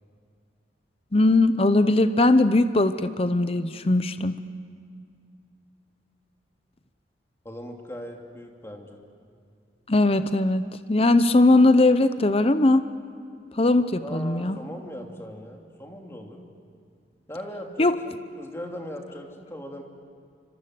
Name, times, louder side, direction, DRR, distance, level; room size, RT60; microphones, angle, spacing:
voice 1, 1.1-4.4 9.9-10.6 10.9-12.8 13.5-14.6 17.8-18.0, left 2 dB, 30° left, 11 dB, 0.8 m, -20 dB
voice 2, 7.4-9.0 14.0-16.4 17.3-19.8, equal, 15° left, 1 dB, 2.8 m, -39 dB
29.5 x 25.5 x 7.8 m, 2.3 s
head